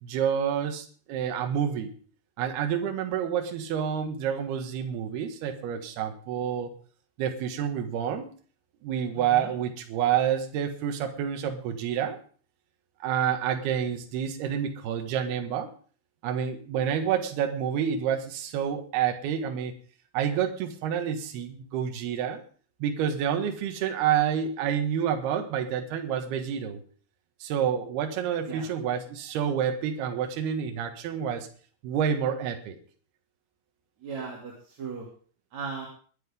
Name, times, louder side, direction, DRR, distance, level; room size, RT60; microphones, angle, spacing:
voice 1, 0.0-1.9 2.4-6.7 7.2-8.3 8.8-12.2 13.0-15.7 16.2-19.7 20.1-22.4 22.8-26.8 27.4-31.5 31.8-32.8, right 8 dB, 65° right, 5 dB, 3.1 m, -28 dB
voice 2, 34.0-35.1 35.5-35.9, right 5 dB, 40° right, -3 dB, 3.4 m, -37 dB
21.0 x 10.5 x 3.7 m, 0.42 s
omnidirectional pair, 5.7 m